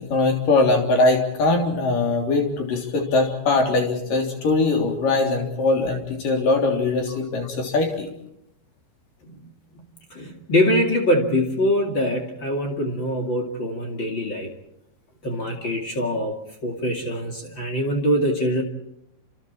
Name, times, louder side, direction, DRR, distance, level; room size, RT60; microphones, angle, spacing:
voice 1, 0.0-8.1, left 3 dB, 50° left, 3 dB, 4.7 m, -21 dB
voice 2, 10.1-14.5 15.2-18.6, equal, 35° left, 3 dB, 2.3 m, -23 dB
29.0 x 27.0 x 4.4 m, 0.79 s
omnidirectional pair, 5.3 m